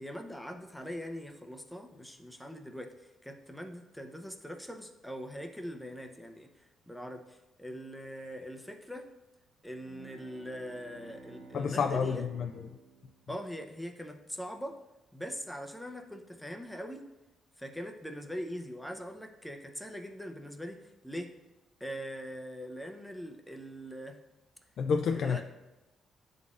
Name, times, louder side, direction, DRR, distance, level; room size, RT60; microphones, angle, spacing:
voice 1, 0.0-9.1 9.6-12.3 13.3-14.8 15.1-17.1 17.6-21.3 21.8-24.2 25.1-25.4, equal, 5° left, 4 dB, 0.6 m, -42 dB
sound 1, 9.8-13.8, right 4 dB, 65° right, 0.9 m, -53 dB
voice 2, 11.5-12.7 24.8-25.4, left 6 dB, 65° left, 5 dB, 0.3 m, -29 dB
10.5 x 3.9 x 2.5 m, 1.0 s
cardioid pair, 90°, 0 cm